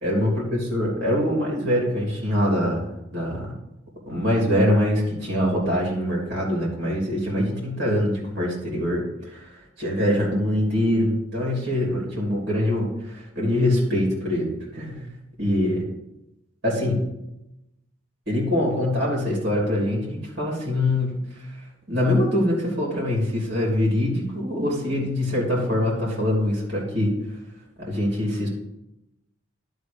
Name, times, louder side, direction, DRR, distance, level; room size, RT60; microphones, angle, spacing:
voice 1, 0.0-3.5 4.1-15.1 15.4-15.9 16.6-17.0 18.3-21.2 21.5-21.6 21.9-27.2 27.8-28.5, left 1 dB, 50° right, -4 dB, 2.8 m, -24 dB
11.5 x 3.8 x 5.1 m, 0.90 s
head